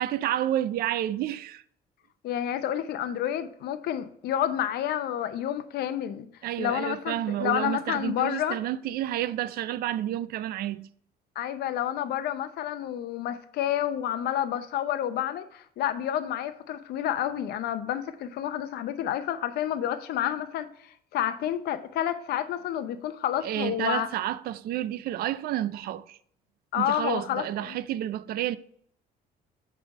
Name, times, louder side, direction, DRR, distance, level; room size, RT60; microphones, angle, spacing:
voice 1, 0.0-1.6 6.4-10.9 23.4-26.2 26.8-28.6, right 12 dB, 65° right, 0.4 m, -30 dB
voice 2, 2.2-6.3 6.6-8.6 11.4-24.1 26.7-27.8, left 11 dB, 70° left, 0.7 m, -29 dB
8.7 x 3.4 x 5.1 m
cardioid pair, 110°, 17 cm